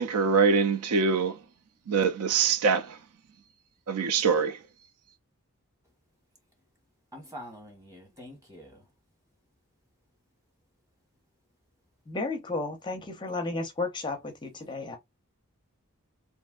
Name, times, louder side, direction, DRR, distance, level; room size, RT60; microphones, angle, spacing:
voice 1, 0.0-1.3 1.9-2.9 3.9-4.6, right 5 dB, 85° right, 0.4 m, -24 dB
voice 2, 7.1-8.8, equal, 15° right, 1.2 m, -45 dB
voice 3, 12.1-15.0, left 3 dB, 20° left, 0.5 m, -33 dB
3.2 x 2.6 x 2.3 m
head